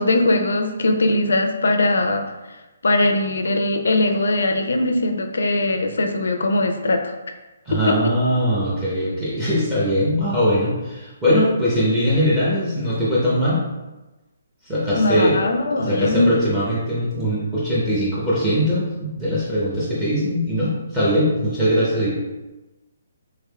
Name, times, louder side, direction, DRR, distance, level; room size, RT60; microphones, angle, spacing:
voice 1, 0.0-2.2 2.8-7.1 7.7-8.1 14.9-16.3, left 2 dB, 85° left, 5 dB, 0.4 m, -20 dB
voice 2, 7.7-13.7 14.6-15.4 15.7-22.2, equal, 10° right, -9 dB, 0.7 m, -21 dB
3.4 x 3.4 x 2.2 m, 1.1 s
hypercardioid pair, 165°, 0 cm